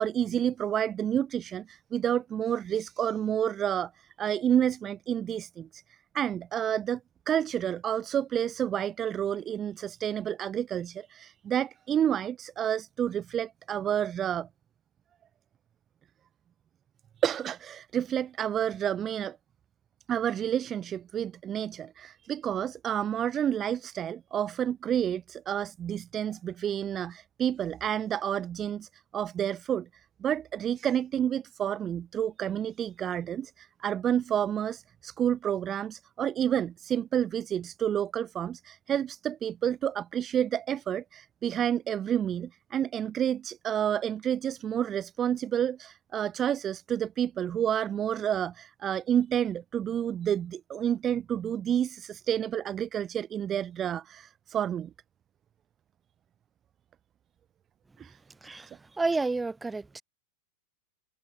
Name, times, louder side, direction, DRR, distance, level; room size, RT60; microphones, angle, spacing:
voice 1, 0.0-7.0 7.3-14.5 17.2-19.4 20.1-29.9 30.2-54.9 58.0-58.2, right 9 dB, 25° right, 0.4 m, -29 dB
voice 2, 58.4-60.0, right 3 dB, 10° right, 1.8 m, -30 dB
figure-of-eight pair, 90°, 0 cm